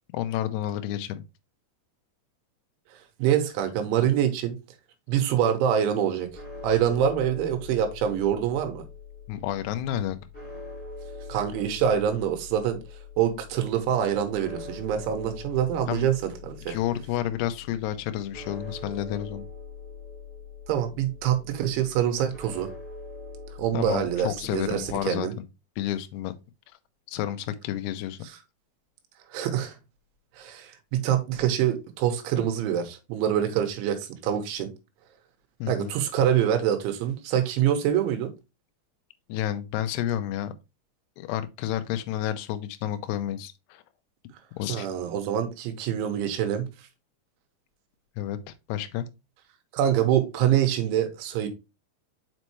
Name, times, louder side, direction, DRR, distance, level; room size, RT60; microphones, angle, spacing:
voice 1, 0.1-1.2 5.1-5.2 9.3-10.2 15.9-16.1 16.7-19.5 23.7-25.4 25.8-26.3 27.1-28.2 35.6-35.9 39.3-40.5 41.2-43.8 44.6-44.9 48.2-49.1, left 12 dB, 80° left, 2.4 m, -30 dB
voice 2, 3.2-4.6 5.1-6.3 6.6-8.9 11.3-12.8 13.2-16.8 20.7-22.7 23.6-25.3 29.3-29.8 30.4-34.7 35.7-38.3 44.7-46.7 49.7-51.5, right 9 dB, 85° right, 3.4 m, -25 dB
sound 1, 6.3-25.0, left 4 dB, 5° left, 1.6 m, -43 dB
6.4 x 5.4 x 3.0 m
omnidirectional pair, 5.4 m